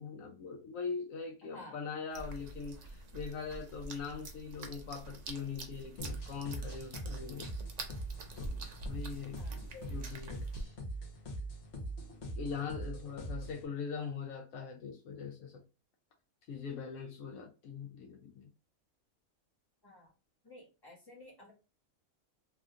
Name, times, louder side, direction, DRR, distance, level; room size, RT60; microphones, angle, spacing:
voice 1, 0.0-7.5 8.4-10.5 12.4-15.6 16.5-18.5, left 5 dB, 75° left, 1.0 m, -42 dB
voice 2, 1.4-1.8 9.4-9.9 19.8-20.1 20.4-21.5, left 2 dB, 15° left, 1.5 m, -52 dB
sound 1, 2.1-10.6, right 2 dB, 70° right, 0.4 m, -46 dB
sound 2, 6.0-13.6, right 1 dB, 55° left, 1.2 m, -42 dB
3.5 x 2.7 x 2.4 m
omnidirectional pair, 1.5 m